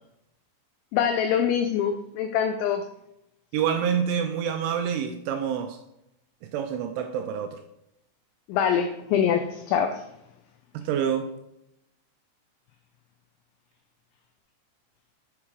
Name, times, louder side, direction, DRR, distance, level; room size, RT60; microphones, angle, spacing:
voice 1, 0.9-2.8 8.5-10.0, left 8 dB, 90° left, 6 dB, 2.6 m, -24 dB
voice 2, 3.5-5.8 6.4-7.6 10.7-11.3, right 8 dB, 85° right, 6 dB, 2.8 m, -27 dB
8.1 x 3.5 x 4.8 m, 0.83 s
omnidirectional pair, 5.8 m